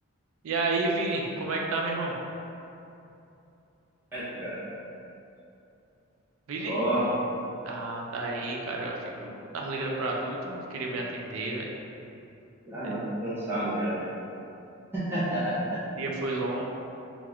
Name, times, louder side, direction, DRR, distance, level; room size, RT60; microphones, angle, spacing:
voice 1, 0.4-2.1 6.5-6.8 7.6-11.7 12.8-12.9 16.0-16.6, right 2 dB, 80° right, -1 dB, 0.4 m, -31 dB
voice 2, 4.1-4.6 6.6-7.1 12.7-14.1 14.9-15.8, right 1 dB, 10° right, -11 dB, 0.6 m, -29 dB
3.4 x 2.5 x 3.3 m, 2.8 s
head